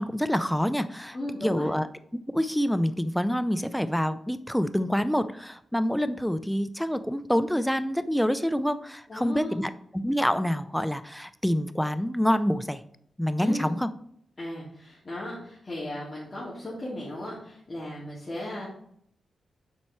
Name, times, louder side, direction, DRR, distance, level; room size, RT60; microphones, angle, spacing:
voice 1, 0.0-1.2 1.4-1.9 2.1-12.8 13.2-13.9, equal, 5° left, 12 dB, 0.4 m, -27 dB
voice 2, 1.1-1.7 9.1-9.6 13.4-13.7 14.4-18.7, left 1 dB, 30° left, -8 dB, 2.5 m, -36 dB
7.4 x 4.5 x 4.4 m, 0.68 s
cardioid pair, 90°, 0 cm